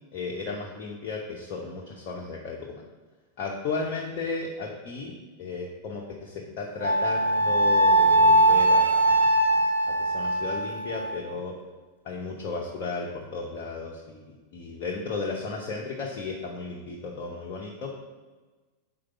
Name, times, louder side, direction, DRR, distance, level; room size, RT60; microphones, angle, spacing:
voice 1, 0.1-2.8 3.4-11.6 12.0-17.9, left 4 dB, 40° left, -1 dB, 0.7 m, -34 dB
Wind instrument woodwind instrument, 6.8-11.2, right 1 dB, 85° left, 0.6 m, -21 dB
5.1 x 3.8 x 5.7 m, 1.3 s
figure-of-eight pair, 90°, 0 cm